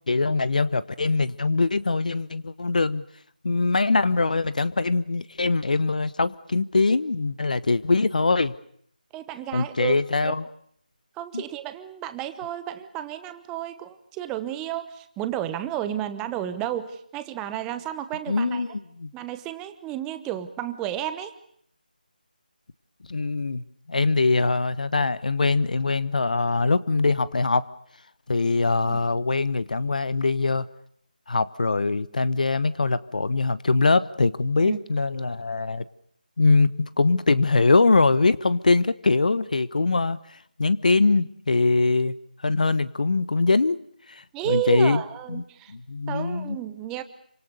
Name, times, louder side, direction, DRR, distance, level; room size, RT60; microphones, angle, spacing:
voice 1, 0.1-3.0 3.4-8.5 9.5-10.4 11.3-11.4 18.3-19.1 23.1-27.7 28.3-30.7 31.3-35.8 36.4-40.2 40.6-42.2 42.4-43.8 44.1-45.0 45.3-45.4 45.7-46.6, left 3 dB, 60° left, 16 dB, 1.1 m, -22 dB
voice 2, 9.1-10.3 11.2-18.6 19.1-21.3 28.8-29.0 34.6-34.8 44.3-45.7 46.1-47.0, right 12 dB, 10° right, 11 dB, 1.0 m, -32 dB
27.5 x 25.5 x 6.7 m, 0.66 s
figure-of-eight pair, 165°, 5 cm